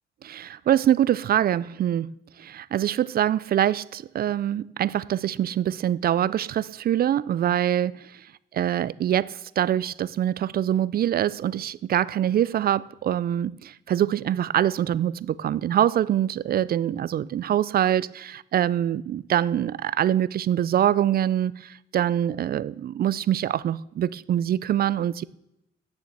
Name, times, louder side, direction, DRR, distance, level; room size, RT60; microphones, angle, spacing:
voice 1, 0.2-2.1 2.4-8.1 8.5-25.2, right 11 dB, 50° right, 0.4 m, -24 dB
9.5 x 7.0 x 7.7 m
cardioid pair, 90°, 20 cm